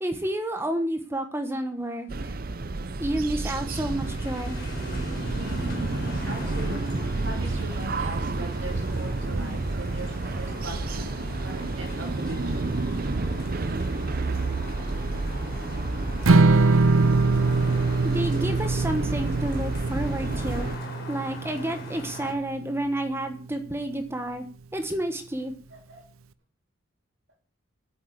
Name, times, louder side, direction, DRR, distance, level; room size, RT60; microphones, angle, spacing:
voice 1, 0.0-2.4 3.0-4.6 18.0-20.7 21.1-24.4 24.7-25.5, right 1 dB, 10° right, 7 dB, 1.1 m, -30 dB
sound 1, 2.1-20.8, right 3 dB, 45° right, 0.6 m, -30 dB
sound 2, 3.6-22.3, left 1 dB, 45° left, 4.3 m, -41 dB
voice 2, 6.2-12.7 25.7-26.0, right 1 dB, 65° right, 1 dB, 3.6 m, -40 dB
Strum, 16.3-22.5, right 3 dB, 90° right, 0.7 m, -23 dB
9.0 x 8.6 x 7.8 m, 0.41 s
head